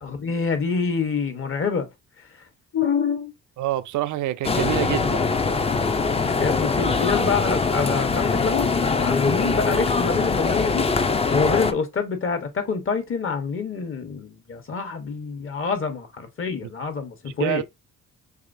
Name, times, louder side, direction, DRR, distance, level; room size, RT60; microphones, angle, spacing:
voice 1, 0.0-1.9 2.7-3.3 6.2-10.9 11.3-17.6, left 5 dB, 45° left, 1.2 m, -26 dB
voice 2, 3.6-5.2 9.4-9.6 17.4-17.6, right 14 dB, 75° right, 0.5 m, -26 dB
sound 1, 4.4-11.7, left 4 dB, 20° left, 0.5 m, -22 dB
4.8 x 3.1 x 2.6 m
cardioid pair, 90°, 30 cm